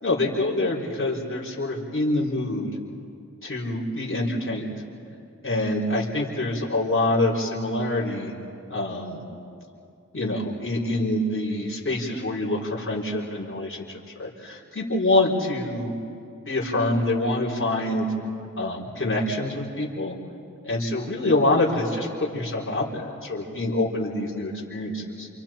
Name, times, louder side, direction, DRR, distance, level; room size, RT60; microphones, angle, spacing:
voice 1, 0.0-2.7 3.4-4.7 5.4-8.3 8.7-9.2 10.1-15.9 16.5-18.1 18.6-20.2 20.6-25.3, left 2 dB, 45° left, -5 dB, 4.4 m, -26 dB
28.5 x 27.5 x 4.5 m, 2.7 s
wide cardioid pair, 65°, 31 cm